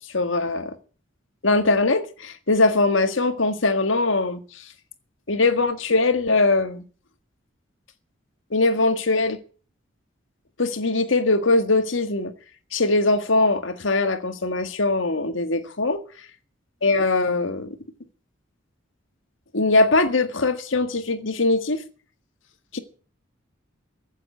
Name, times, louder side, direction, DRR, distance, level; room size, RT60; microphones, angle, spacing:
voice 1, 0.1-0.8 1.4-4.4 5.3-6.8 8.5-9.4 10.6-12.3 12.7-16.0 16.8-17.7 19.5-21.8 22.7-22.8, left 2 dB, 80° left, 1.7 m, -21 dB
15.0 x 7.4 x 9.0 m
head